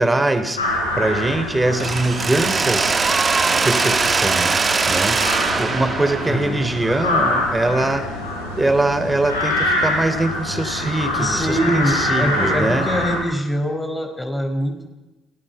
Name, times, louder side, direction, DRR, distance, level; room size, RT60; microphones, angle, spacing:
voice 1, 0.0-2.9 3.5-4.5 4.9-5.2 5.6-8.1 8.6-12.9, right 2 dB, 15° right, 9 dB, 3.7 m, -22 dB
sound 1, 0.6-13.2, left 1 dB, 90° left, 6.4 m, -25 dB
Mechanisms, 1.8-7.7, right 4 dB, 30° right, 1.6 m, -22 dB
voice 2, 6.2-6.7 11.2-14.9, equal, 15° left, 5 dB, 5.5 m, -23 dB
27.5 x 19.0 x 5.8 m, 1.1 s
figure-of-eight pair, 50°, 0 cm